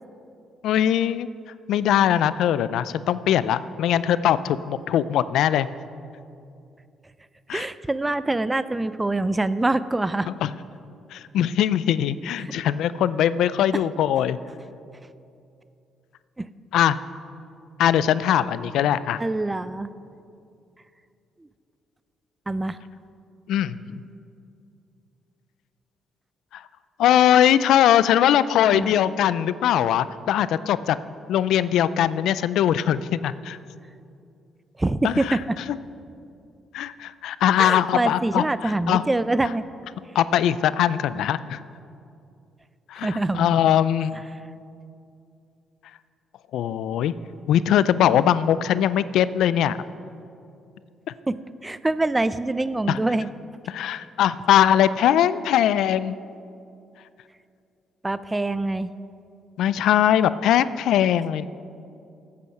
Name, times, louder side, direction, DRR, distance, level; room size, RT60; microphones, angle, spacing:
voice 1, 0.6-1.3 1.7-5.7 7.5-7.7 10.4-10.5 11.1-14.4 16.7-17.0 17.8-19.2 23.5-24.0 26.5-26.6 27.0-31.0 31.3-33.6 35.0-35.4 35.7-35.8 36.7-39.0 40.1-41.6 42.9-44.1 46.5-47.1 47.5-49.8 52.9-53.0 53.7-56.2 59.6-61.4, left 10 dB, 80° left, 16 dB, 0.4 m, -21 dB
voice 2, 7.5-10.3 12.4-12.5 16.4-16.5 19.2-19.9 22.5-22.8 28.7-28.9 34.8-35.4 37.6-39.6 43.0-43.5 51.3-51.4 51.6-53.3 58.0-58.9, right 2 dB, 15° right, 15 dB, 0.4 m, -25 dB
14.0 x 8.5 x 5.9 m, 2.6 s
cardioid pair, 90°, 0 cm